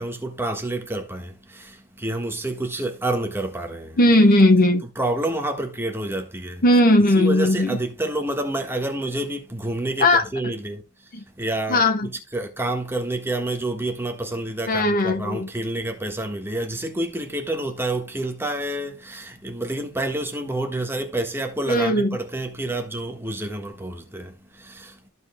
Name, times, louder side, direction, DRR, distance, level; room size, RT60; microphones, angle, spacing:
voice 1, 0.0-4.0 4.9-6.6 7.2-25.1, right 1 dB, 10° right, 1.4 m, -28 dB
voice 2, 4.0-4.8 6.6-7.8 10.0-10.2 11.1-11.2 11.7-12.1 14.7-15.5 21.7-22.2, left 1 dB, 40° left, 1.1 m, -17 dB
14.5 x 5.3 x 2.3 m
head